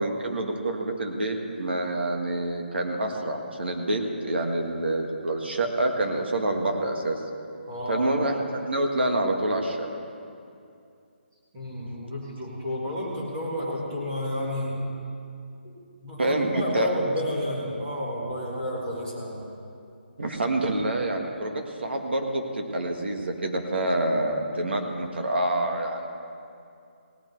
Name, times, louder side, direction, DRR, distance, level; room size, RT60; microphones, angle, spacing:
voice 1, 0.0-7.2 7.9-9.9 16.2-16.9 20.2-26.1, right 1 dB, 70° right, 3 dB, 1.7 m, -27 dB
voice 2, 7.7-8.2 11.5-14.8 15.6-15.7 16.0-19.4, equal, 20° right, -6 dB, 2.2 m, -31 dB
17.5 x 9.0 x 4.6 m, 2.5 s
hypercardioid pair, 180°, 6 cm